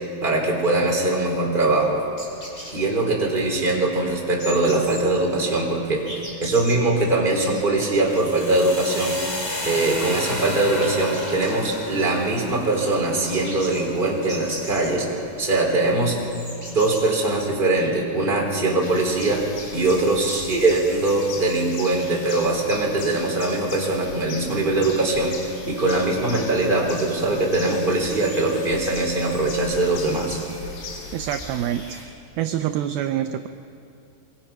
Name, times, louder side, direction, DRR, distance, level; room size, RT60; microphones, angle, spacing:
voice 1, 0.2-2.0 2.7-9.2 9.6-15.1 15.4-16.2 16.7-19.5 19.7-30.4, right 2 dB, 15° right, -1 dB, 3.2 m, -22 dB
sound 1, 1.6-18.0, equal, 15° left, 4.6 m, -41 dB
sound 2, 8.0-16.0, left 1 dB, 35° left, 4.9 m, -34 dB
sound 3, 18.8-32.0, left 3 dB, 70° left, 5.8 m, -38 dB
voice 2, 31.1-32.1 32.4-33.5, right 11 dB, 80° right, 8 dB, 2.3 m, -26 dB
25.5 x 24.0 x 5.8 m, 2.6 s
omnidirectional pair, 5.0 m